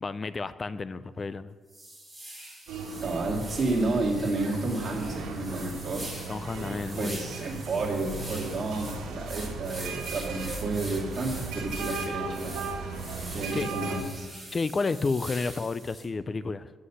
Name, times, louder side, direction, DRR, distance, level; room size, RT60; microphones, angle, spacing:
voice 1, 0.0-1.5 6.3-7.2 13.5-13.7 14.5-16.7, left 4 dB, 35° left, 16 dB, 0.3 m, -31 dB
sound 1, 1.1-1.2 1.7-16.1, right 1 dB, 5° right, 2.9 m, -44 dB
sound 2, 2.7-14.0, right 4 dB, 90° right, 1.5 m, -37 dB
voice 2, 3.0-6.1 6.5-12.5 13.3-14.3, right 2 dB, 45° right, -2 dB, 2.2 m, -31 dB
9.9 x 5.7 x 5.6 m, 1.5 s
cardioid pair, 90°, 0 cm